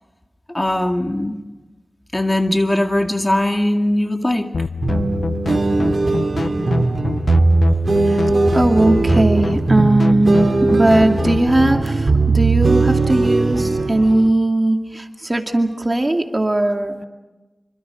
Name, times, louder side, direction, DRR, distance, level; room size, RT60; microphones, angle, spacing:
voice 1, 0.5-1.4 2.1-4.5, left 1 dB, 20° left, 5 dB, 2.1 m, -19 dB
sound 1, 4.5-11.9, left 4 dB, 80° left, 0.6 m, -25 dB
sound 2, 4.8-14.3, right 3 dB, 65° right, 2.5 m, -19 dB
voice 2, 8.5-17.1, right 1 dB, 30° right, 4 dB, 2.4 m, -18 dB
26.5 x 25.0 x 5.1 m, 1.1 s
wide cardioid pair, 60°, 0 cm